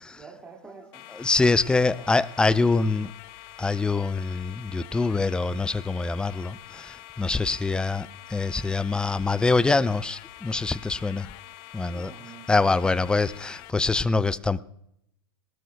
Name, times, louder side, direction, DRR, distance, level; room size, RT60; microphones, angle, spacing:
voice 1, 0.2-1.1 1.7-2.1 11.8-13.2, right 5 dB, 15° right, 2.3 m, -48 dB
sound 1, 0.9-13.7, left 16 dB, 40° left, 0.8 m, -46 dB
voice 2, 1.2-3.1 3.6-11.3 11.7-12.1 12.5-14.6, left 3 dB, 5° left, 0.4 m, -24 dB
22.0 x 19.0 x 2.3 m
figure-of-eight pair, 105°, 13 cm